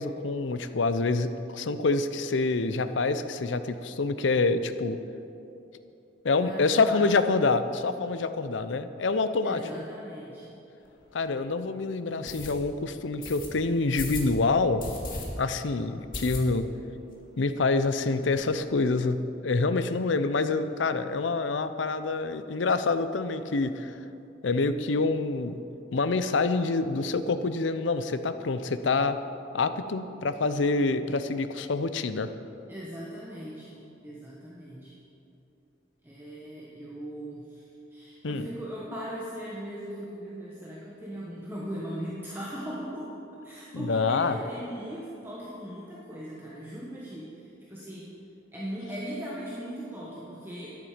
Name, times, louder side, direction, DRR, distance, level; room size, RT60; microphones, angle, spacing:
voice 1, 0.0-5.0 6.2-9.6 11.1-14.8 15.4-16.7 17.4-23.9 24.4-25.6 25.9-29.2 29.5-32.3 38.2-38.5 43.7-44.4, left 3 dB, 80° left, 11 dB, 0.6 m, -26 dB
voice 2, 6.4-7.4 9.4-10.5 32.7-34.9 36.0-37.6 37.9-43.1 43.4-48.1 48.5-50.8, equal, 10° right, -6 dB, 1.4 m, -39 dB
sound 1, 10.9-11.0 11.4-11.5 12.3-12.5 13.2-13.5 13.9-14.3 14.8-15.3 15.6-15.7 16.1-16.8 17.1-17.2 17.5-17.6 17.8-18.4, left 2 dB, 50° left, 2.0 m, -37 dB
13.0 x 10.5 x 5.0 m, 2.8 s
head